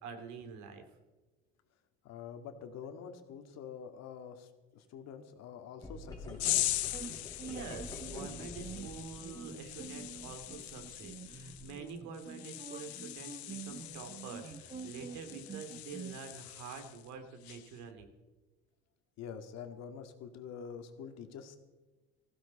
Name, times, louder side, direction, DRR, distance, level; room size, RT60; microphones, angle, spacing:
voice 1, 0.0-0.8 7.4-18.1, right 5 dB, 65° right, 5 dB, 3.1 m, -47 dB
voice 2, 2.0-6.6 19.2-21.6, left 7 dB, 55° left, 7 dB, 2.1 m, -46 dB
sound 1, 5.8-11.7, left 2 dB, 10° left, 4.8 m, -49 dB
sound 2, 6.4-17.1 17.4-17.8, left 16 dB, 90° left, 0.7 m, -40 dB
sound 3, 6.4-16.2, right 5 dB, 20° right, 1.3 m, -47 dB
19.5 x 15.5 x 4.3 m, 1.2 s
hypercardioid pair, 85°, 31 cm